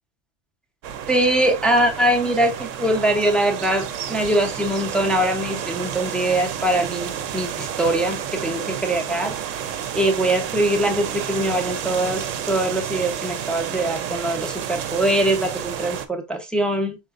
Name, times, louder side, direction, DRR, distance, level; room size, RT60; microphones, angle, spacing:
sound 1, 0.8-16.1, right 9 dB, 90° right, 1.0 m, -30 dB
voice 1, 1.1-9.4 9.9-17.0, right 1 dB, ahead, 0.6 m, -22 dB
5.1 x 4.3 x 2.5 m
omnidirectional pair, 1.3 m